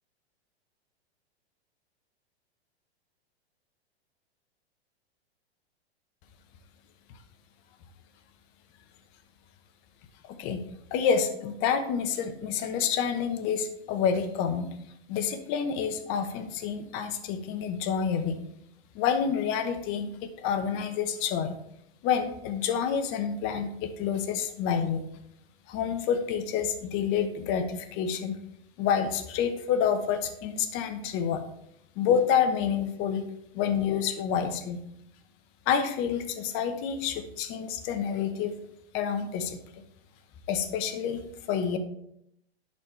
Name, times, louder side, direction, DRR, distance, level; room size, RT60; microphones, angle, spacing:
voice 1, 10.2-10.6 10.9-14.7 15.1-18.4 18.9-21.5 22.0-25.0 25.7-28.4 28.8-31.4 32.0-33.2 33.5-34.8 35.7-38.5 38.9-39.6 40.5-41.8, left 7 dB, 40° left, 8 dB, 0.9 m, -28 dB
10.5 x 4.3 x 3.2 m, 0.77 s
hypercardioid pair, 110°, 32 cm